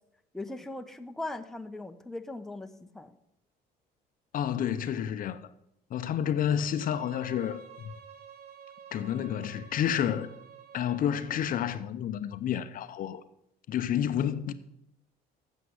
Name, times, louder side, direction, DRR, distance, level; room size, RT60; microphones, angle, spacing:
voice 1, 0.3-3.1, left 2 dB, ahead, 0.7 m, -39 dB
voice 2, 4.3-5.5 5.9-7.6 8.9-10.3 10.7-13.2 13.7-14.5, left 9 dB, 55° left, 0.6 m, -30 dB
Bowed string instrument, 6.5-11.6, right 8 dB, 80° right, 1.2 m, -51 dB
8.1 x 7.2 x 7.8 m
cardioid pair, 110°, 17 cm